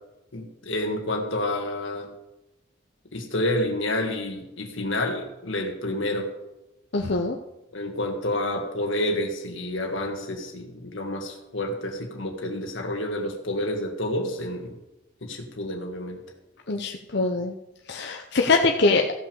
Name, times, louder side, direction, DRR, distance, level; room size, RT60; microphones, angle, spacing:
voice 1, 0.3-2.1 3.1-6.3 7.7-14.7 15.2-16.2, left 1 dB, 80° left, 2 dB, 1.7 m, -29 dB
voice 2, 6.9-7.4 16.7-17.5 17.9-19.0, left 3 dB, 60° left, 2 dB, 0.8 m, -23 dB
15.0 x 5.9 x 7.0 m, 0.96 s
head